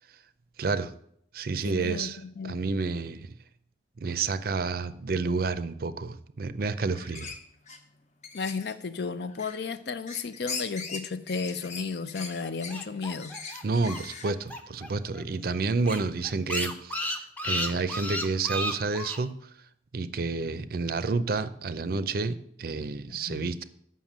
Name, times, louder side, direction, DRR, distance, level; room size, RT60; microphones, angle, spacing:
voice 1, 0.6-0.9 1.3-3.3 4.0-7.4 13.6-17.2 17.4-19.3 19.9-23.6, right 4 dB, 55° right, 14 dB, 0.5 m, -30 dB
voice 2, 1.6-2.6 8.3-13.3 23.1-23.5, left 4 dB, 60° left, 13 dB, 0.5 m, -34 dB
sound 1, 6.9-7.4 7.7-7.8 8.2-8.7 9.2-9.8 10.1-14.5, left 5 dB, 40° left, 0.9 m, -40 dB
sound 2, 12.4-14.9 15.1-15.2 15.5-15.6 15.8-19.2, equal, 10° left, 0.6 m, -33 dB
7.4 x 5.8 x 7.2 m, 0.70 s
head